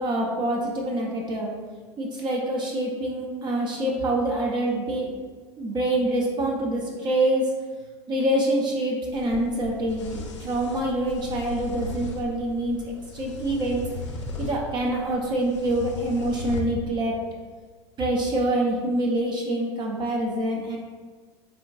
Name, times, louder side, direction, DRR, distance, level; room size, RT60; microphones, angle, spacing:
voice 1, 0.0-1.5 2.0-5.2 5.6-7.5 8.1-13.8 14.4-17.2 18.0-20.8, right 1 dB, 30° right, -1 dB, 0.5 m, -26 dB
sound 1, 9.1-16.6, left 2 dB, 75° left, 0.4 m, -37 dB
3.5 x 2.2 x 2.3 m, 1.5 s
figure-of-eight pair, 80°, 15 cm